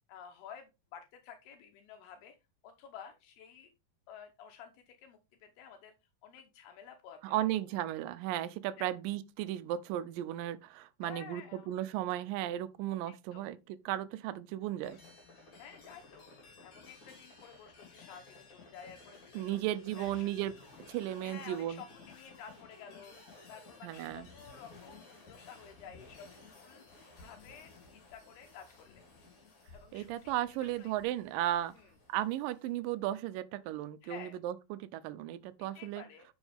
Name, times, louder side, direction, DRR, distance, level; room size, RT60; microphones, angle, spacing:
voice 1, 0.1-2.4 2.6-3.7 4.1-5.9 6.2-7.5 8.8-8.9 11.0-11.7 13.3-13.4 15.5-16.3 16.6-19.6 20.0-20.3 21.2-23.2 23.5-26.8 27.2-29.1 29.7-30.3 30.6-30.9 31.7-31.9 34.0-34.4 35.6-36.3, left 8 dB, 80° left, 3.0 m, -52 dB
voice 2, 7.2-13.6 13.9-15.0 19.3-20.5 20.9-21.8 23.8-24.3 29.9-31.7 32.1-36.0, right 13 dB, 90° right, 1.9 m, -35 dB
sound 1, 14.8-32.7, left 3 dB, 45° left, 4.6 m, -56 dB
10.5 x 6.2 x 3.5 m
omnidirectional pair, 4.7 m